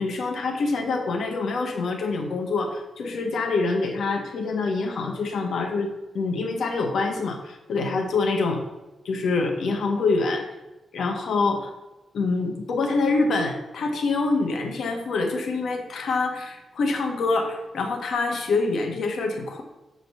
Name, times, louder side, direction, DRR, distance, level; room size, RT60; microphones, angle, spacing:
voice 1, 0.0-8.6 9.0-10.4 10.9-11.7 12.1-19.6, left 3 dB, 75° left, 4 dB, 1.4 m, -25 dB
7.7 x 5.2 x 5.5 m, 1.1 s
wide cardioid pair, 170°, 0 cm